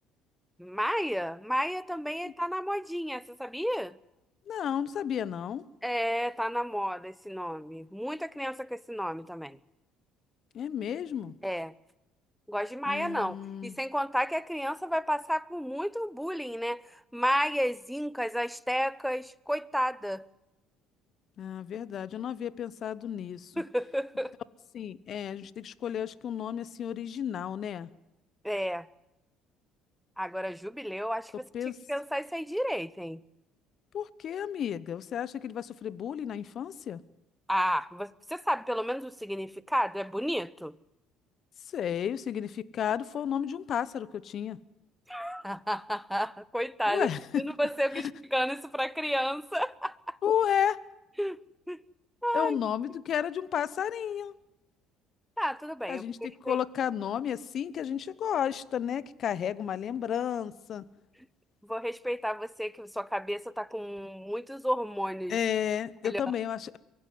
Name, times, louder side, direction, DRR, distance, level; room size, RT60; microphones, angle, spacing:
voice 1, 0.6-4.0 5.8-9.6 11.4-11.7 12.5-20.3 23.6-24.3 28.4-28.9 30.2-31.5 31.9-33.2 37.5-40.8 45.1-47.1 47.4-50.2 51.2-51.4 51.7-51.8 52.2-52.6 55.4-56.6 61.6-65.4 66.0-66.2, equal, ahead, 0.9 m, -32 dB
voice 2, 4.5-5.6 10.5-11.3 12.9-13.7 21.4-23.6 24.7-27.9 31.5-31.8 33.9-37.0 41.7-44.6 46.9-47.5 47.9-48.1 50.2-50.8 52.3-54.3 55.9-60.8 65.3-66.8, left 9 dB, 55° left, 1.0 m, -32 dB
23.5 x 16.0 x 9.6 m
supercardioid pair, 70°, 0 cm